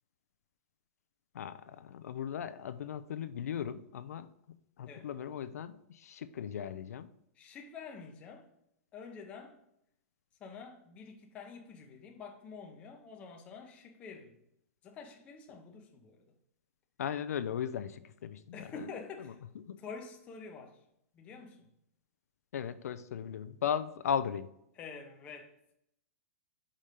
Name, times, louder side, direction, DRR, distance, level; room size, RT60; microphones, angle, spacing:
voice 1, 1.3-4.3 4.8-7.1 17.0-18.9 19.7-19.8 22.5-24.5, left 8 dB, 75° left, 0.4 m, -37 dB
voice 2, 4.9-5.4 7.3-8.5 8.9-9.6 10.4-14.4 14.8-16.3 18.5-19.4 19.8-20.8 21.1-21.7 24.8-25.5, left 5 dB, 15° left, 0.6 m, -48 dB
5.0 x 4.2 x 5.1 m
hypercardioid pair, 175°, 8 cm